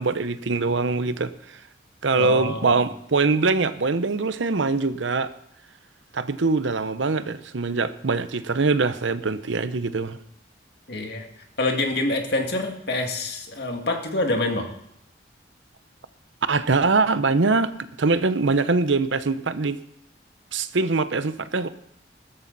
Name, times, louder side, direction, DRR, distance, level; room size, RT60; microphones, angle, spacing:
voice 1, 0.0-1.6 2.0-5.3 6.1-10.2 16.5-17.7 18.0-19.8 20.5-21.7, right 3 dB, 80° right, 0.8 m, -23 dB
voice 2, 2.2-2.8 10.9-11.3 11.6-14.7, left 2 dB, 60° left, 2.1 m, -26 dB
15.5 x 13.5 x 4.1 m
head